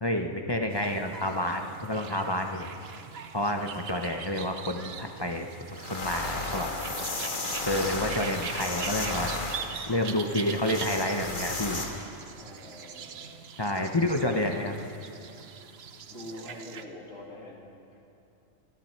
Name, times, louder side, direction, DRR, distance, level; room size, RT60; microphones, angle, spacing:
voice 1, 0.0-2.7 3.3-5.5 5.9-6.7 7.6-9.3 9.9-11.8 13.6-14.8, left 1 dB, 25° left, 3 dB, 0.7 m, -29 dB
sound 1, 0.7-16.8, right 6 dB, 55° right, 0.9 m, -42 dB
sound 2, 5.4-5.5 5.7-11.9, left 2 dB, 40° left, 1.6 m, -34 dB
voice 2, 12.4-13.3 16.1-18.0, left 1 dB, 80° left, -3 dB, 2.5 m, -45 dB
25.5 x 11.0 x 4.5 m, 2.8 s
omnidirectional pair, 1.3 m